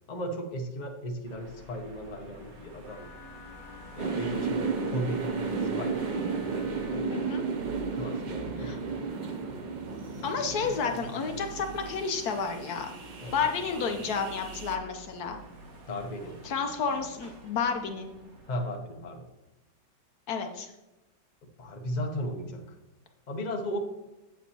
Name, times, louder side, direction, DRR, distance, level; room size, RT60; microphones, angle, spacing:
voice 1, 0.1-3.1 3.9-7.4 7.9-8.8 13.2-13.3 13.7-14.1 15.9-16.4 18.5-19.3 21.4-22.8 23.3-23.8, equal, 35° left, 3 dB, 0.8 m, -36 dB
sound 1, 1.2-18.7, right 2 dB, 55° right, 1.7 m, -49 dB
Wind instrument woodwind instrument, 2.8-7.0, left 3 dB, 5° left, 2.8 m, -51 dB
sound 2, 4.0-14.8, right 4 dB, 85° right, 0.4 m, -34 dB
voice 2, 7.1-7.4 8.6-8.8 10.2-12.9 13.3-15.4 16.4-18.1 20.3-20.7, left 5 dB, 65° left, 5 dB, 1.2 m, -31 dB
8.2 x 7.9 x 2.9 m, 1.0 s
omnidirectional pair, 1.9 m